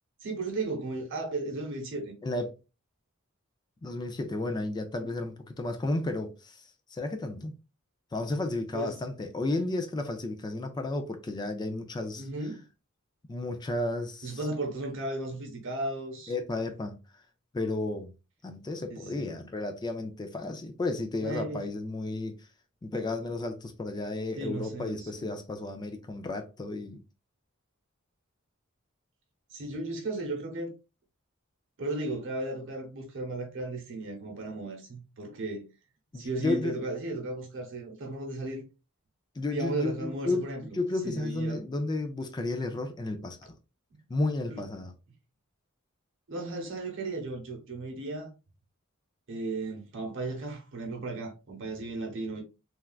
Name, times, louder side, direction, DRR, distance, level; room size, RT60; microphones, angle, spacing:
voice 1, 0.2-2.1 8.7-8.9 12.2-12.6 14.2-16.3 18.9-19.4 21.2-21.7 24.4-25.4 29.5-30.7 31.8-35.6 36.1-38.6 39.5-40.8 41.0-41.6 44.5-44.6 46.3-48.3 49.3-52.4, right 2 dB, 60° right, 0.9 m, -35 dB
voice 2, 2.2-2.5 3.8-6.6 6.9-7.6 8.1-12.3 13.3-14.4 16.3-16.9 17.5-18.1 18.4-22.4 22.8-27.0 36.1-36.8 39.4-40.5 40.7-43.5 44.1-44.9, left 2 dB, 20° left, 0.3 m, -32 dB
3.3 x 2.3 x 2.2 m
head